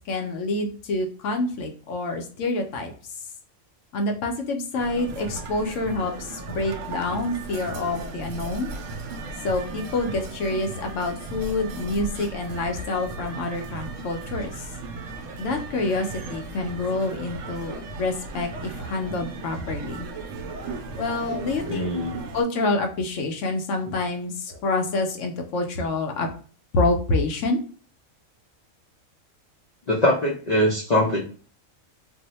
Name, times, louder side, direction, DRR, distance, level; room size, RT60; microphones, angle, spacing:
voice 1, 0.1-2.9 3.9-8.7 9.4-14.7 15.4-20.1 21.0-21.9 22.3-26.3 26.7-27.6, left 2 dB, 70° left, 4 dB, 0.9 m, -27 dB
sound 1, 4.8-22.4, right 3 dB, 70° right, 0.9 m, -36 dB
voice 2, 21.7-22.1 29.9-31.2, left 1 dB, 50° left, -3 dB, 0.5 m, -22 dB
2.6 x 2.1 x 4.0 m, 0.41 s
omnidirectional pair, 1.4 m